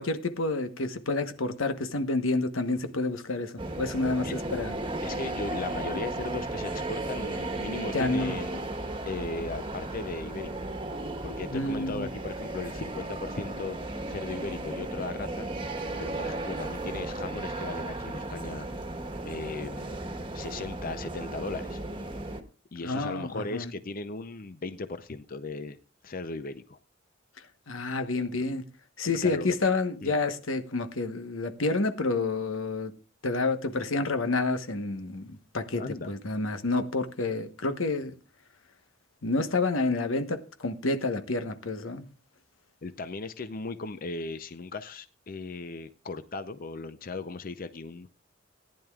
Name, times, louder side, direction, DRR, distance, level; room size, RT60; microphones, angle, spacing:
voice 1, 0.0-4.8 7.9-8.3 11.5-12.1 22.8-23.7 27.7-28.6 29.0-32.9 33.2-38.1 39.2-42.1, left 3 dB, 90° left, 1.1 m, -29 dB
sound 1, 3.6-22.4, right 2 dB, 25° right, 1.3 m, -35 dB
voice 2, 5.0-8.6 9.1-10.7 11.2-13.8 14.1-15.5 16.0-18.7 19.2-19.9 20.3-21.8 22.7-25.8 26.0-26.8 29.0-29.6 30.0-30.2 35.8-36.1 42.8-48.1, left 3 dB, 45° left, 0.6 m, -37 dB
18.5 x 10.5 x 2.4 m
head